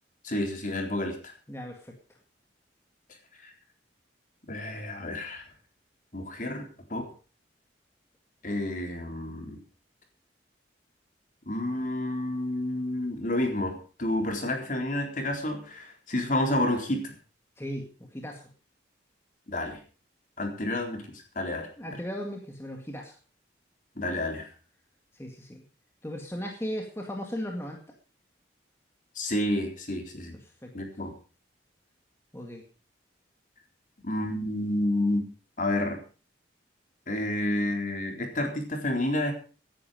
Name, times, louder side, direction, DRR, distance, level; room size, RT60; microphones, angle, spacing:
voice 1, 0.2-1.3 3.4-3.5 4.5-5.4 6.1-7.1 8.4-9.6 11.5-17.1 19.5-19.8 20.4-21.0 21.4-21.7 24.0-24.5 29.2-30.4 30.7-31.1 34.0-35.2 35.6-36.0 37.1-39.3, left 1 dB, 45° left, 3 dB, 3.8 m, -30 dB
voice 2, 1.5-1.9 17.6-18.5 21.8-23.1 25.1-25.6 26.0-27.8 30.6-30.7 32.3-32.6, equal, 15° left, 1 dB, 2.0 m, -36 dB
17.0 x 10.5 x 5.1 m, 0.37 s
head